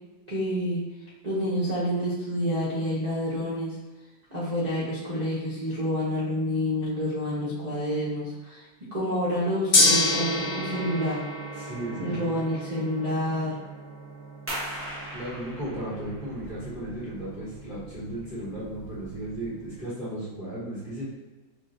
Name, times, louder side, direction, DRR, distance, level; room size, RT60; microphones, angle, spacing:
voice 1, 0.3-0.8 1.2-3.7 4.3-8.6 8.9-11.2 12.0-13.6, equal, 55° right, -10 dB, 0.4 m, -28 dB
Gong, 9.7-19.9, left 2 dB, 60° left, 1.2 m, -30 dB
voice 2, 11.6-12.4 15.1-21.1, right 1 dB, 30° left, -10 dB, 1.0 m, -35 dB
sound 1, 14.5-19.8, equal, 10° right, 0.7 m, -40 dB
5.8 x 2.2 x 2.6 m, 1.2 s
omnidirectional pair, 2.1 m